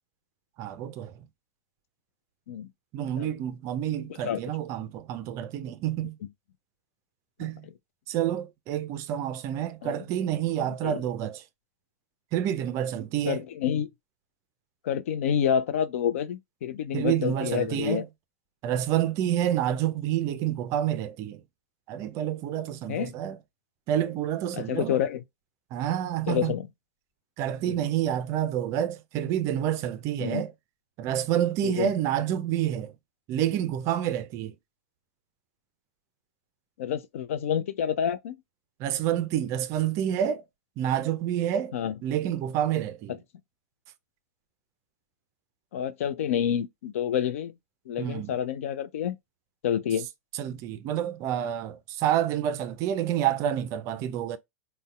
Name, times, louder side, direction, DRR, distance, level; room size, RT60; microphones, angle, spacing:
voice 1, 0.6-1.1 2.9-6.2 7.4-7.7 8.1-11.4 12.3-13.4 16.9-18.0 18.6-21.4 21.9-23.4 23.9-25.0 25.7-26.5 27.4-30.5 31.0-32.9 33.3-34.5 38.8-40.4 40.8-41.7 42.0-43.2 48.0-48.3 50.3-54.4, right 11 dB, 40° right, 0.4 m, -28 dB
voice 2, 3.9-4.4 7.4-7.7 9.8-10.0 10.8-11.0 13.3-13.9 14.8-18.0 22.9-23.1 24.5-25.2 26.3-26.6 27.6-27.8 30.2-30.4 31.6-31.9 36.8-38.4 41.7-41.9 45.7-47.5 47.9-49.2 49.6-50.1, left 9 dB, 60° left, 0.4 m, -28 dB
3.9 x 2.1 x 2.2 m
figure-of-eight pair, 100°, 8 cm